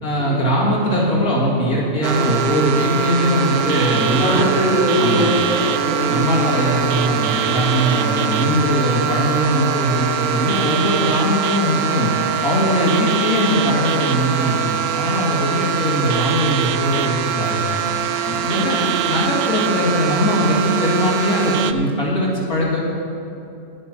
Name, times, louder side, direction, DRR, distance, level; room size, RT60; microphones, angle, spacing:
voice 1, 0.0-4.4 5.0-5.3 6.1-12.1 12.4-17.6 18.3-22.8, equal, 80° left, -4 dB, 2.9 m, -20 dB
sound 1, 2.0-21.7, right 8 dB, 65° right, 0.6 m, -22 dB
voice 2, 4.0-6.5 18.5-19.0, equal, 10° right, -11 dB, 3.2 m, -22 dB
11.0 x 9.3 x 6.1 m, 2.7 s
omnidirectional pair, 1.5 m